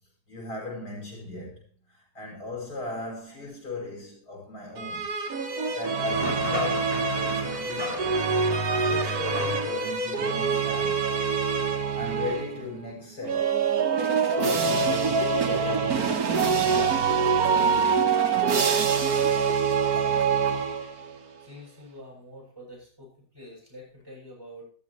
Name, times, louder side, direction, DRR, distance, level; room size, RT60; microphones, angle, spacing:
voice 1, 0.3-1.6 1.9-5.1 5.7-8.0 8.9-11.1 11.9-13.6 14.2-17.1, left 2 dB, 80° left, 7.0 m, -38 dB
sound 1, 4.8-12.6 13.2-21.1, right 5 dB, 70° right, 1.6 m, -25 dB
sound 2, 6.1-10.0, equal, 35° right, 4.5 m, -36 dB
voice 2, 19.9-20.3 20.7-20.8 21.4-24.7, equal, 15° right, 7.7 m, -47 dB
14.0 x 13.5 x 3.1 m
omnidirectional pair, 1.7 m